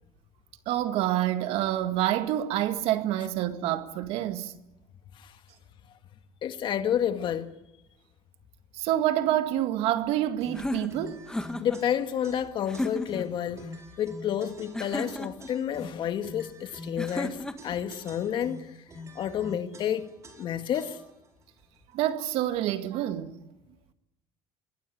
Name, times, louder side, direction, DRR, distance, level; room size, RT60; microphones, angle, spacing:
voice 1, 0.7-4.5 8.7-11.2 21.9-23.4, right 13 dB, 70° right, 2.0 m, -27 dB
voice 2, 6.4-7.5 11.6-18.7 19.2-20.1 20.4-21.0, left 9 dB, 50° left, 1.9 m, -30 dB
sound 1, 10.4-21.3, left 1 dB, 30° right, 4.5 m, -47 dB
sound 2, 10.5-11.8 12.7-13.3 14.7-15.5 17.0-17.8, left 1 dB, 5° left, 1.7 m, -33 dB
25.0 x 20.5 x 8.4 m
cardioid pair, 115°, 10 cm